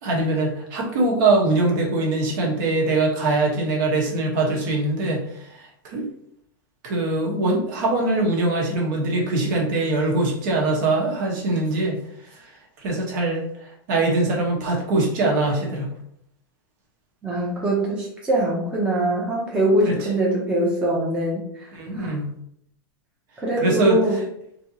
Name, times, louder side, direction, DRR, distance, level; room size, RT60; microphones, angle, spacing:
voice 1, 0.0-5.3 5.5-6.1 6.8-12.0 12.8-13.4 13.9-15.9 19.8-20.0 21.7-22.3 23.6-24.0, right 2 dB, 55° right, -1 dB, 1.1 m, -22 dB
voice 2, 17.2-22.1 23.4-24.2, right 1 dB, 10° right, -5 dB, 0.7 m, -23 dB
3.3 x 2.8 x 2.8 m, 0.71 s
supercardioid pair, 155°, 12 cm